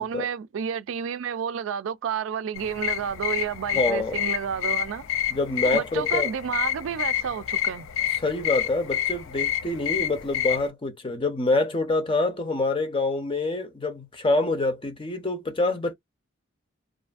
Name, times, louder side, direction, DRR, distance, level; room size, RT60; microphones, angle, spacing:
voice 1, 0.0-5.0 5.6-7.9, right 7 dB, 75° right, 0.3 m, -30 dB
sound 1, 2.6-10.7, left 11 dB, 80° left, 0.3 m, -28 dB
voice 2, 3.7-4.2 5.3-6.3 8.1-15.9, left 2 dB, 25° left, 0.6 m, -26 dB
2.4 x 2.4 x 2.4 m
head